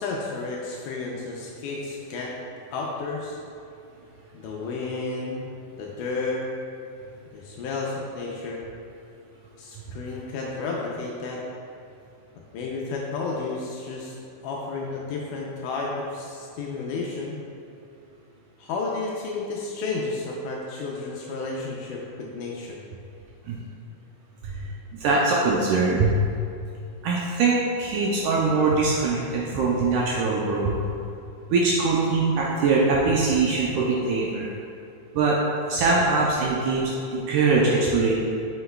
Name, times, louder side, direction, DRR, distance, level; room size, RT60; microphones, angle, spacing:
voice 1, 0.0-2.3 2.7-3.4 4.3-5.4 5.8-6.4 7.3-8.6 9.6-11.4 12.5-14.2 14.4-17.4 18.6-22.8, left 3 dB, 80° left, -2 dB, 1.9 m, -32 dB
voice 2, 24.9-26.1 27.0-30.7 31.5-34.5 35.2-35.4 35.7-38.1, right 3 dB, 80° right, -4 dB, 1.8 m, -22 dB
7.7 x 5.8 x 2.2 m, 2.5 s
omnidirectional pair, 4.0 m